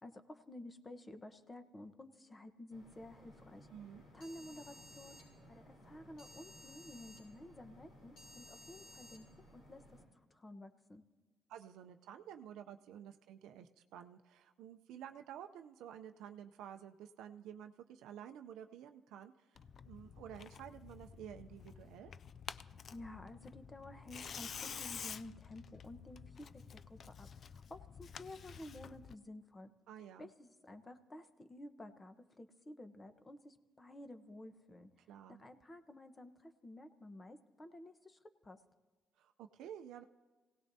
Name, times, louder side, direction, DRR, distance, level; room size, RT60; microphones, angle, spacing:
voice 1, 0.0-3.7 4.1-9.3 9.5-10.0 10.3-11.0 22.9-29.7 30.2-34.9 35.3-38.6, left 1 dB, 25° left, 9 dB, 1.0 m, -52 dB
sound 1, 2.7-10.0, equal, 80° left, 4.9 m, -57 dB
voice 2, 3.7-4.1 11.5-19.6 19.8-22.1 29.9-30.3 35.1-35.4 39.2-40.0, right 9 dB, 90° right, 6 dB, 0.5 m, -51 dB
Tearing, 19.6-29.2, left 6 dB, 50° left, 0.4 m, -50 dB
27.0 x 17.5 x 2.7 m, 1.3 s
cardioid pair, 90°, 0 cm